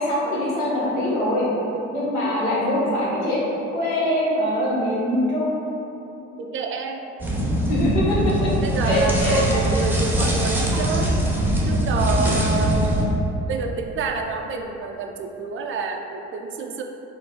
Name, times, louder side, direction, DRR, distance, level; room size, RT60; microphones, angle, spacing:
voice 1, 0.0-1.5 1.9-3.4 3.7-5.6 7.7-8.5 8.8-9.4, left 1 dB, 70° left, -7 dB, 1.2 m, -23 dB
voice 2, 6.4-7.0 8.6-11.1 11.6-16.8, right 4 dB, 35° right, 3 dB, 0.4 m, -28 dB
sound 1, 7.2-13.1, equal, 5° right, 0.8 m, -22 dB
4.5 x 2.4 x 3.9 m, 2.9 s
figure-of-eight pair, 55°, 36 cm